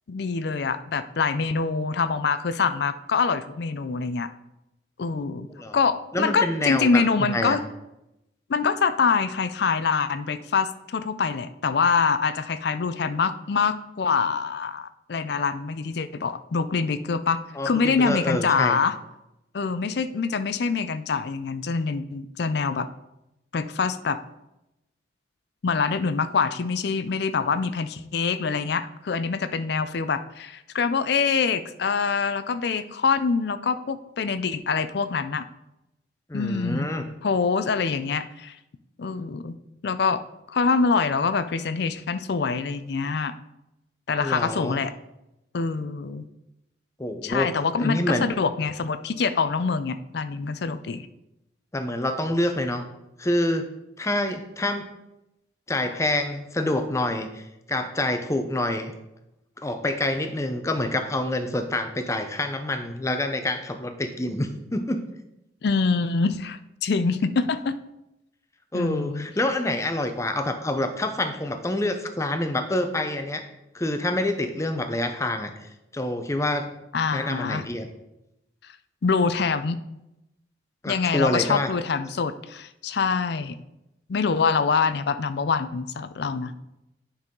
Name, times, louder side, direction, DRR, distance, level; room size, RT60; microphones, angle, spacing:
voice 1, 0.1-4.3 5.0-5.5 5.7-7.6 8.5-17.4 17.6-18.9 19.5-22.9 23.5-24.2 25.6-35.4 36.3-36.9 37.2-38.5 39.0-39.5 39.8-40.2 40.5-43.3 44.1-44.9 45.5-46.2 47.2-51.1 65.6-67.8 68.7-69.3 76.9-77.6 79.0-79.8 80.9-83.6 84.1-86.5, left 5 dB, 55° left, 13 dB, 0.4 m, -25 dB
voice 2, 6.1-7.6 17.5-18.8 36.3-37.0 44.2-44.7 47.0-47.5 47.8-48.3 51.7-52.8 53.2-53.7 54.0-54.9 55.7-58.9 59.6-65.0 68.7-73.4 73.7-76.7 77.1-77.9 80.8-81.7, left 1 dB, 15° left, 7 dB, 0.6 m, -27 dB
9.7 x 5.6 x 3.8 m, 0.90 s
head